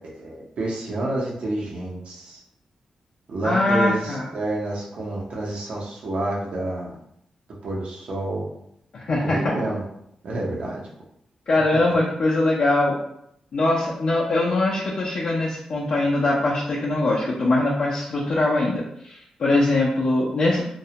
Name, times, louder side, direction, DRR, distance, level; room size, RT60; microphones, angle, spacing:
voice 1, 0.2-2.4 3.3-6.9 7.6-8.5 9.2-9.8 10.2-10.8, right 2 dB, 75° right, -3 dB, 0.7 m, -28 dB
voice 2, 3.4-4.3 8.9-9.5 10.3-10.4 11.5-12.9 13.5-20.6, left 2 dB, 65° left, -6 dB, 0.4 m, -22 dB
2.2 x 2.1 x 2.8 m, 0.75 s
cardioid pair, 95°, 2 cm